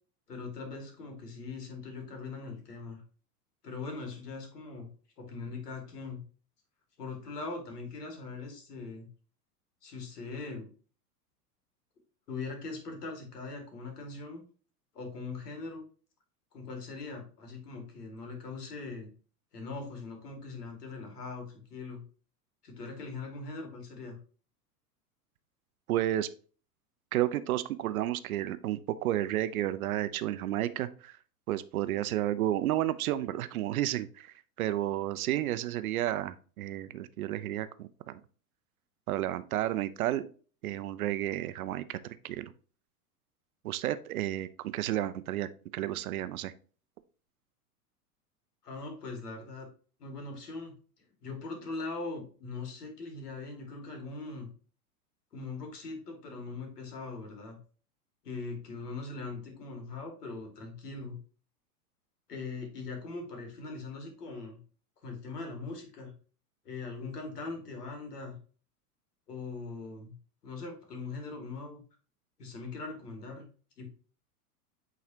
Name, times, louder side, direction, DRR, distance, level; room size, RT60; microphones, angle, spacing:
voice 1, 0.3-3.0 3.6-4.9 5.2-6.2 7.0-9.1 9.8-10.7 12.3-14.4 14.9-15.8 16.5-19.1 19.5-22.0 22.6-24.2 48.6-49.7 50.0-50.7 51.2-54.5 55.3-57.6 58.2-61.2 62.3-64.6 65.0-66.1 66.6-68.4 69.3-70.1 70.4-71.8 72.4-73.4 73.8-73.9, left 3 dB, 80° left, 3 dB, 2.3 m, -41 dB
voice 2, 25.9-26.3 27.1-31.2 31.5-38.2 39.1-40.2 40.6-42.5 43.6-46.5, right 13 dB, 65° right, 14 dB, 0.7 m, -32 dB
8.4 x 4.0 x 2.9 m, 0.40 s
hypercardioid pair, 95°, 47 cm